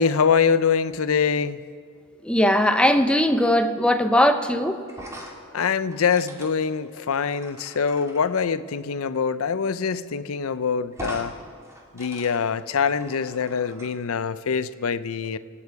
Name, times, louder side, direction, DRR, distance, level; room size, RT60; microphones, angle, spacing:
voice 1, 0.0-1.6 5.5-11.3 11.9-15.4, left 6 dB, 80° left, 0.5 m, -24 dB
voice 2, 2.2-4.8, left 1 dB, 5° left, 0.7 m, -19 dB
sound 1, 4.9-8.2 9.7-9.8 10.1-10.2 10.9-11.3 11.6-13.9, right 1 dB, 15° right, 2.0 m, -41 dB
25.5 x 8.7 x 4.7 m
head